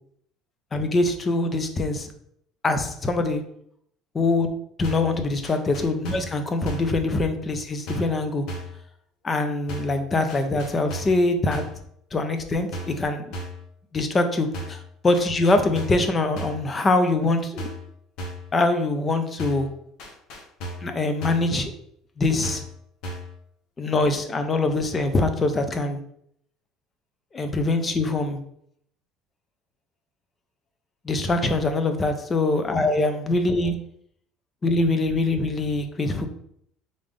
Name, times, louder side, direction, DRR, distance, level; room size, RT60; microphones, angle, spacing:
voice 1, 0.7-2.1 2.6-3.4 4.1-4.5 4.8-8.5 9.2-11.6 12.1-13.4 13.9-17.7 18.5-19.7 20.8-21.7 22.2-22.6 23.8-26.0 27.3-28.4 31.0-33.7 34.6-36.3, left 2 dB, 20° left, 8 dB, 0.4 m, -23 dB
sound 1, 4.8-5.2 5.4-6.4 6.7-7.0 7.9-8.2 8.5-8.8 9.7-10.0 10.3-11.2 11.5-11.8 12.7-13.0 13.3-13.6 14.5-14.9 15.1-16.1 16.4-16.7 17.6-17.9 18.2-18.5 19.4-19.7 20.0-20.9 21.2-21.5 22.4-22.7 23.0-23.4, equal, 55° left, 0.9 m, -35 dB
3.8 x 3.4 x 3.5 m, 0.69 s
cardioid pair, 170°, 0 cm